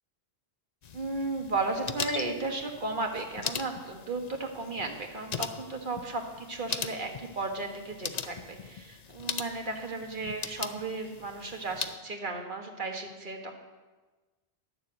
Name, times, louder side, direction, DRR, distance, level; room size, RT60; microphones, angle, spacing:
sound 1, 0.8-12.0, left 6 dB, 50° left, 0.6 m, -40 dB
voice 1, 0.9-13.5, right 3 dB, 50° right, 3 dB, 1.5 m, -34 dB
11.5 x 6.9 x 7.7 m, 1.3 s
omnidirectional pair, 1.1 m